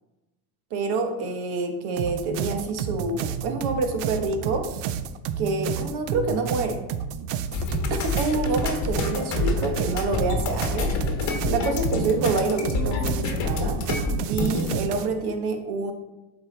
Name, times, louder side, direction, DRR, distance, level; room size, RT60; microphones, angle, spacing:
voice 1, 0.7-4.7 5.4-6.8 7.9-11.0 11.4-13.8 14.3-15.9, right 3 dB, 50° right, 6 dB, 1.2 m, -27 dB
sound 1, 2.0-15.1, right 8 dB, 75° right, 0.7 m, -31 dB
sound 2, 7.5-14.8, left 4 dB, 35° left, 1.2 m, -28 dB
11.5 x 4.8 x 3.3 m, 1.1 s
cardioid pair, 160°, 49 cm